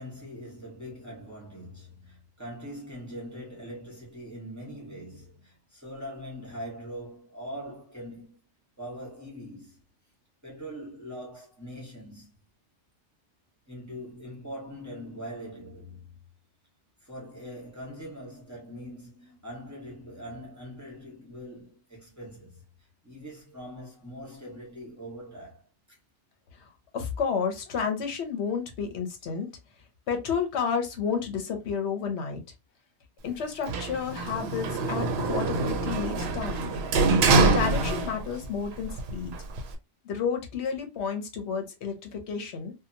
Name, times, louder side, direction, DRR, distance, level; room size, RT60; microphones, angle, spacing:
voice 1, 0.0-8.4 8.8-9.8 10.4-12.3 13.7-16.2 17.0-26.0, equal, 15° right, 1.0 m, -42 dB
voice 2, 26.9-29.5 30.1-32.4 33.2-36.7 37.4-39.3 40.0-42.7, left 6 dB, 70° left, 0.9 m, -31 dB
Sliding door, 33.7-38.5 38.8-39.7, right 3 dB, 70° right, 0.8 m, -25 dB
2.7 x 2.2 x 2.6 m
omnidirectional pair, 1.2 m